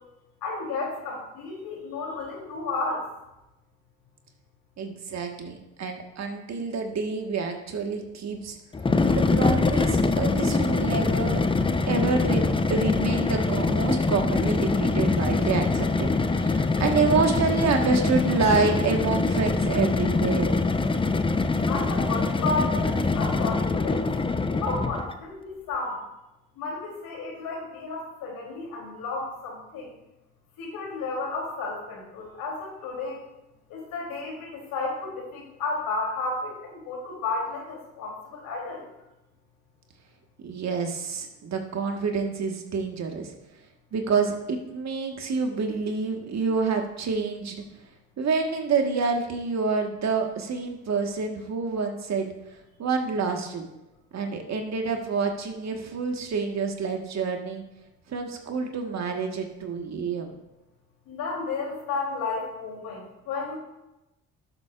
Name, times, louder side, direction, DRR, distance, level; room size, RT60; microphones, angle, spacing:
voice 1, 0.4-3.1 21.7-24.0 24.6-26.0 26.5-29.9 30.6-33.2 33.7-38.8 61.1-63.6, left 3 dB, 65° left, -1 dB, 3.3 m, -32 dB
voice 2, 4.8-8.6 9.1-11.4 11.9-12.4 12.7-20.5 40.4-43.3 43.9-47.6 48.2-52.3 52.8-53.6 54.1-57.6 58.1-60.3, right 4 dB, 45° right, 3 dB, 1.6 m, -27 dB
sound 1, 8.7-25.2, left 3 dB, 15° left, 0.6 m, -24 dB
11.5 x 8.0 x 2.5 m, 0.96 s
hypercardioid pair, 60°, 37 cm